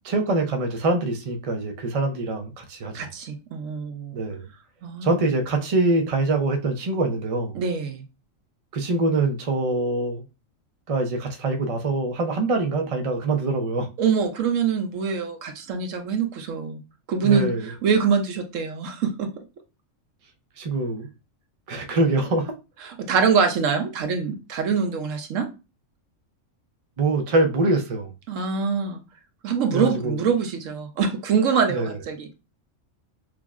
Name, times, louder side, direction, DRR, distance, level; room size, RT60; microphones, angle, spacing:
voice 1, 0.0-3.1 4.1-4.5 5.0-7.6 8.7-10.2 10.9-13.9 17.2-17.7 20.6-21.1 21.7-22.5 27.0-28.1 29.7-30.2 31.7-31.9, right 2 dB, 45° right, 0.4 m, -24 dB
voice 2, 2.9-4.2 4.8-5.2 7.5-8.0 14.0-16.8 17.1-19.4 22.8-25.5 28.3-29.0 29.4-32.3, right 6 dB, 75° right, 1.0 m, -24 dB
6.0 x 2.0 x 2.3 m
omnidirectional pair, 1.4 m